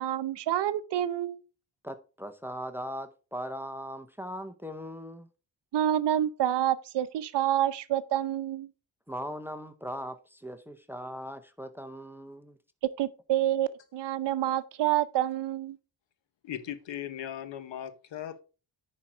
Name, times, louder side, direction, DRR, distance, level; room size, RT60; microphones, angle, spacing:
voice 1, 0.0-1.4 5.7-8.7 13.0-15.8, right 12 dB, 60° right, 0.7 m, -28 dB
voice 2, 1.8-5.3 9.1-12.6, equal, 5° right, 0.5 m, -39 dB
voice 3, 16.4-18.4, left 10 dB, 65° left, 1.2 m, -38 dB
10.0 x 4.3 x 4.9 m
cardioid pair, 145°, 47 cm